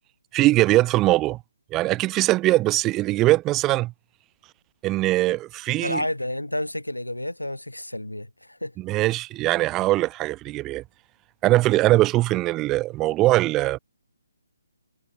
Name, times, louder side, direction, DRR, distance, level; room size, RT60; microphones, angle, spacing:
voice 1, 0.3-1.4 1.7-3.9 4.8-6.0 8.8-10.8 11.4-13.8, right 17 dB, 20° right, 1.7 m, -21 dB
voice 2, 5.8-8.7, left 1 dB, 90° left, 4.5 m, -30 dB
figure-of-eight pair, 140°, 0 cm